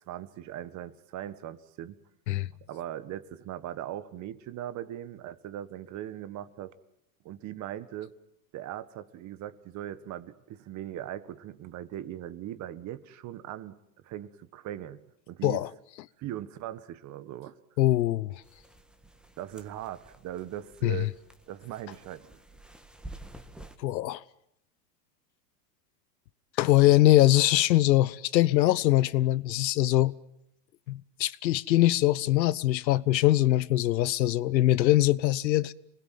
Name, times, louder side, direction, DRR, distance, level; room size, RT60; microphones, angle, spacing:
voice 1, 0.1-2.0 2.7-6.7 7.2-8.1 8.5-13.8 14.0-15.6 16.2-17.6 19.4-21.1 21.5-22.4, right 12 dB, 35° right, 1.6 m, -39 dB
voice 2, 17.8-18.3 20.8-21.1 23.8-24.2 26.6-30.2 30.9-35.7, left 15 dB, 85° left, 1.1 m, -23 dB
sound 1, 18.4-23.8, right 1 dB, ahead, 1.7 m, -50 dB
27.0 x 20.5 x 9.3 m
supercardioid pair, 135°, 49 cm